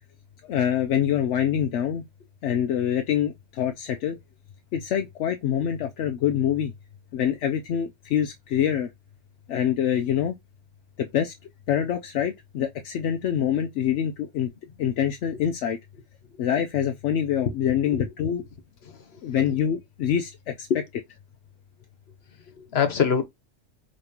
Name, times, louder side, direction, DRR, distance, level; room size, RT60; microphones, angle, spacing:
voice 1, 0.4-2.0 2.4-4.2 4.7-6.7 7.1-8.9 9.5-10.4 11.0-11.3 11.7-14.5 14.8-15.8 16.4-18.4 19.2-20.3 20.6-20.7, left 9 dB, 75° left, 0.9 m, -25 dB
voice 2, 18.9-19.4 20.7-20.8 22.5-23.2, left 7 dB, 60° left, 1.3 m, -25 dB
5.2 x 3.1 x 2.8 m
omnidirectional pair, 1.2 m